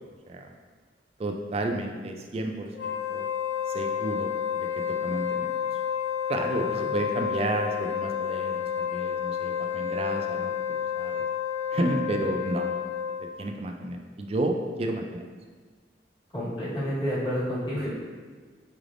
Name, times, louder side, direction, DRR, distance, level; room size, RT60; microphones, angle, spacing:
voice 1, 1.2-3.3 3.7-5.8 6.3-10.5 11.0-11.2 11.7-12.7 13.2-15.3, right 2 dB, 35° right, 3 dB, 0.3 m, -31 dB
Wind instrument woodwind instrument, 2.7-13.3, left 8 dB, 70° left, 0.5 m, -30 dB
voice 2, 16.3-17.9, equal, 25° left, -10 dB, 1.3 m, -29 dB
4.9 x 3.3 x 2.5 m, 1.5 s
head